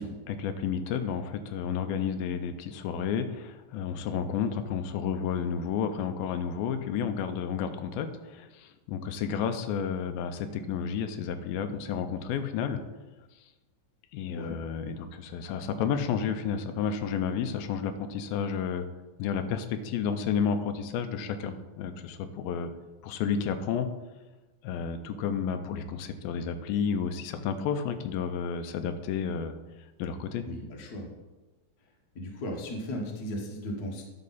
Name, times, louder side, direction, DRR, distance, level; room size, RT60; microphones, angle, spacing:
voice 1, 0.0-12.8 14.1-18.9 19.2-22.7 23.0-23.9 24.6-29.5 30.0-30.4, left 7 dB, 90° left, 9 dB, 2.4 m, -31 dB
voice 2, 30.4-31.1 32.1-34.0, equal, 65° left, -1 dB, 0.9 m, -36 dB
10.5 x 5.4 x 4.1 m, 1.1 s
omnidirectional pair, 4.1 m